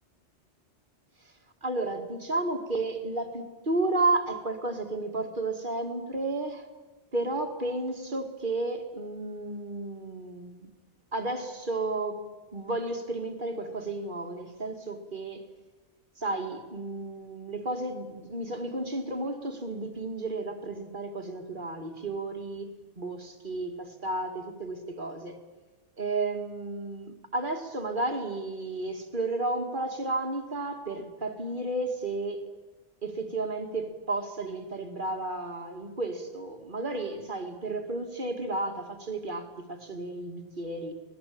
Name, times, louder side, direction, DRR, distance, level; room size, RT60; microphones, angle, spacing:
voice 1, 1.6-6.7 7.1-10.7 11.1-12.2 12.5-15.4 16.2-22.7 23.0-25.4 26.0-32.4 33.0-40.9, right 2 dB, 45° right, 5 dB, 2.5 m, -32 dB
24.5 x 19.0 x 8.7 m, 1.2 s
omnidirectional pair, 1.2 m